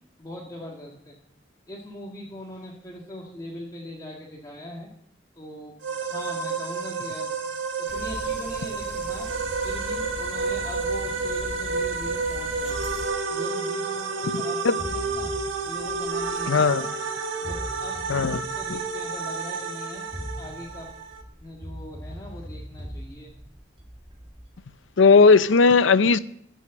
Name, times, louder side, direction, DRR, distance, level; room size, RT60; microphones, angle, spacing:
voice 1, 0.2-1.1 1.7-4.9 5.4-7.3 7.8-9.3 9.6-12.8 13.3-15.3 15.6-16.9 17.4-18.1 18.3-20.1 20.4-20.9 21.4-23.3, equal, 20° left, 1.8 m, -41 dB
sound 1, 5.8-21.2, right 4 dB, 75° right, 1.6 m, -30 dB
sound 2, 7.9-13.1, equal, 5° right, 1.9 m, -40 dB
sound 3, 14.8-16.9 17.4-19.3 19.9-25.0, equal, 25° right, 2.2 m, -41 dB
voice 2, 16.5-16.9 18.1-18.4 25.0-26.2, left 4 dB, 80° left, 0.6 m, -16 dB
15.0 x 6.4 x 8.0 m
head